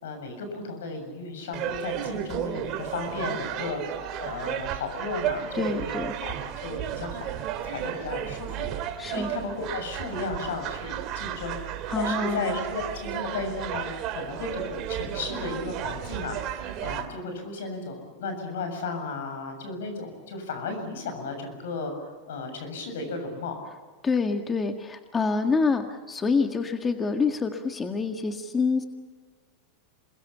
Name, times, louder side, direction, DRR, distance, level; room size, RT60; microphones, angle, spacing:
voice 1, 0.0-3.8 4.2-7.3 7.6-11.6 11.9-14.6 14.9-21.9 22.2-23.6, left 3 dB, 80° left, 6 dB, 7.3 m, -34 dB
sound 1, 1.5-17.0, right 10 dB, 50° right, 2.6 m, -33 dB
voice 2, 5.6-6.1 9.0-9.3 11.9-12.5 24.0-28.8, left 4 dB, 20° left, 5 dB, 1.8 m, -26 dB
28.0 x 21.5 x 7.1 m, 1.4 s
hypercardioid pair, 105°, 0 cm